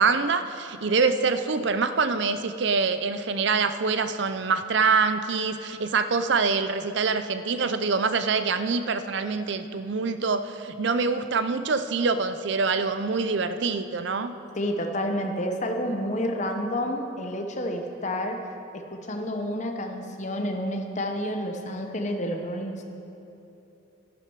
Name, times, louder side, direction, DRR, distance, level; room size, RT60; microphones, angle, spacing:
voice 1, 0.0-14.3, right 4 dB, 55° right, 11 dB, 0.5 m, -25 dB
voice 2, 14.6-18.4 18.7-22.9, equal, 35° left, 4 dB, 0.8 m, -29 dB
11.5 x 11.0 x 4.7 m, 3.0 s
head